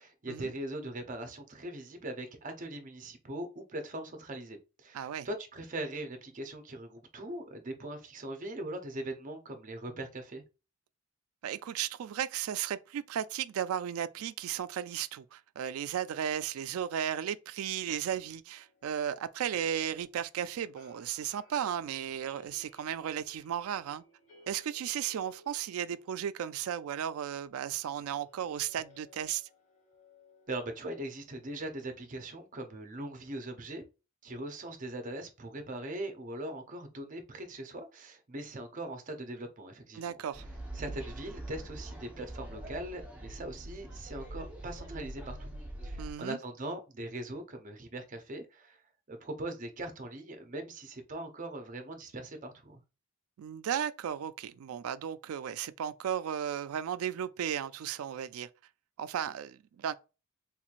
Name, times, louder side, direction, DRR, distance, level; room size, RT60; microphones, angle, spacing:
voice 1, 0.0-10.4 30.5-33.8 34.2-40.2 40.7-45.5 45.8-48.8 49.1-52.8, right 1 dB, 35° right, 0.6 m, -41 dB
voice 2, 4.9-5.3 11.4-24.0 24.5-29.5 40.0-40.4 46.0-46.4 53.4-58.5 59.0-59.9, right 9 dB, 75° right, 0.3 m, -35 dB
sound 1, 18.5-31.1, left 2 dB, 35° left, 1.7 m, -61 dB
sound 2, 40.3-46.1, right 1 dB, 5° right, 0.8 m, -43 dB
3.6 x 3.1 x 2.4 m
head